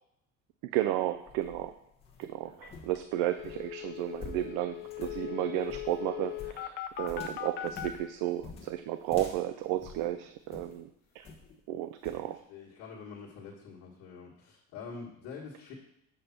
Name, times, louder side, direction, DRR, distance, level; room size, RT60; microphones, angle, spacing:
voice 1, 0.6-1.7 2.2-10.9 11.1-11.3 11.7-12.4, right 13 dB, 65° right, 10 dB, 0.5 m, -33 dB
sound 1, 1.1-10.8 11.2-11.6 12.0-12.3, left 4 dB, 15° left, 1.2 m, -48 dB
sound 2, 2.6-2.7 3.0-3.1 3.3-7.9, left 14 dB, 35° left, 0.4 m, -39 dB
voice 2, 12.2-15.7, left 5 dB, 50° left, -6 dB, 1.7 m, -46 dB
7.0 x 5.3 x 5.9 m, 0.79 s
cardioid pair, 180°, 33 cm